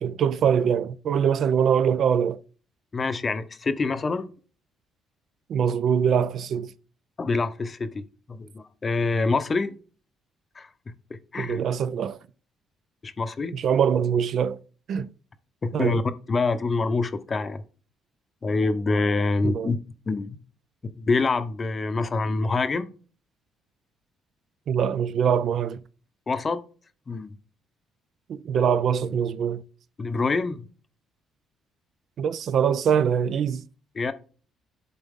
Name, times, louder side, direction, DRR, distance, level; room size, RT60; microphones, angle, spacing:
voice 1, 0.0-2.4 5.5-6.7 11.4-12.2 13.5-14.6 14.9-15.1 15.7-16.0 19.4-19.7 24.7-25.8 28.3-29.6 32.2-33.6, right 7 dB, 55° right, 0.4 m, -23 dB
voice 2, 2.9-4.3 7.2-9.7 10.6-11.6 13.0-13.5 15.6-16.0 16.3-17.6 18.4-19.8 20.1-20.4 20.8-22.8 26.3-26.6 27.1-27.3 30.0-30.7 33.9-34.1, left 3 dB, 30° left, 0.7 m, -26 dB
11.0 x 4.0 x 3.6 m
cardioid pair, 125°, 0 cm